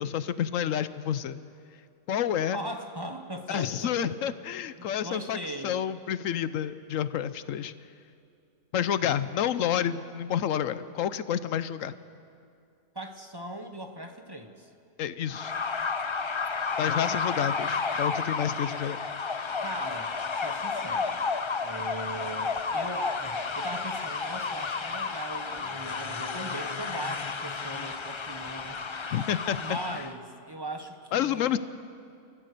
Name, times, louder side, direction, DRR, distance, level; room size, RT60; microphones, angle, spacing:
voice 1, 0.0-1.4 2.1-2.6 3.5-5.4 5.6-7.7 8.7-11.9 15.0-15.5 16.8-19.0 29.1-29.8 31.1-31.6, left 9 dB, 80° left, 14 dB, 1.1 m, -29 dB
voice 2, 2.5-4.1 4.8-5.8 12.9-14.7 19.6-21.2 21.6-28.8 29.6-31.6, right 1 dB, 20° right, 5 dB, 1.1 m, -39 dB
sound 1, 15.3-30.1, left 4 dB, 35° left, 0.5 m, -32 dB
29.5 x 14.0 x 6.7 m, 2.4 s
omnidirectional pair, 1.3 m